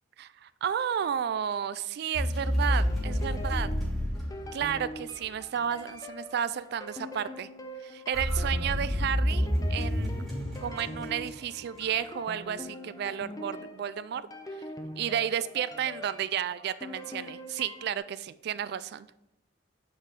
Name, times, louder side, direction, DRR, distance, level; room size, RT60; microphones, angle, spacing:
voice 1, 0.2-3.7 4.5-7.5 7.8-10.1 10.6-14.2 15.0-19.1, right 9 dB, 60° right, 15 dB, 0.3 m, -32 dB
sound 1, 2.1-5.1 8.1-11.6, equal, 5° left, 2.7 m, -29 dB
sound 2, 2.7-18.0, left 1 dB, 20° left, 0.6 m, -43 dB
8.0 x 5.0 x 3.6 m, 0.87 s
head